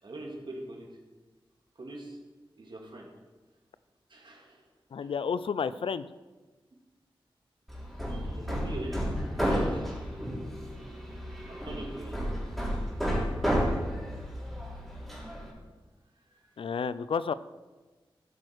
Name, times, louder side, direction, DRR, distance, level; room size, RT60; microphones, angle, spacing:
voice 1, 0.0-0.9 1.8-2.2 2.5-3.1 4.1-4.6 5.0-5.1 8.1-9.2 9.4-10.0 11.5-12.3 16.3-16.4, right 1 dB, 60° right, 0 dB, 2.4 m, -43 dB
voice 2, 4.9-6.1 16.6-17.3, left 6 dB, 75° left, 15 dB, 0.4 m, -31 dB
Hammer, 7.7-15.5, equal, ahead, 3.8 m, -32 dB
13.0 x 6.3 x 4.6 m, 1.2 s
cardioid pair, 45°, 9 cm